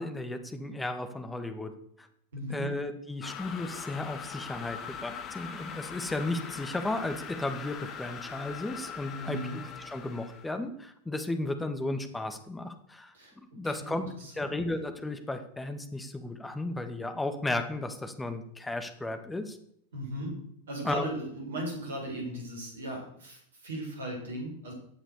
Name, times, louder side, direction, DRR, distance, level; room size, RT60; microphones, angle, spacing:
voice 1, 0.0-1.7 2.0-2.1 2.5-13.1 13.6-14.1 14.3-19.6 20.8-21.1, left 2 dB, 10° left, 8 dB, 1.9 m, -34 dB
voice 2, 2.3-2.7 9.1-9.6 13.1-14.6 19.9-20.3 20.7-24.7, right 1 dB, 65° right, 0 dB, 7.2 m, -37 dB
sound 1, 3.2-10.6, left 7 dB, 30° left, 1.8 m, -42 dB
15.0 x 8.8 x 6.9 m, 0.69 s
figure-of-eight pair, 90°, 0 cm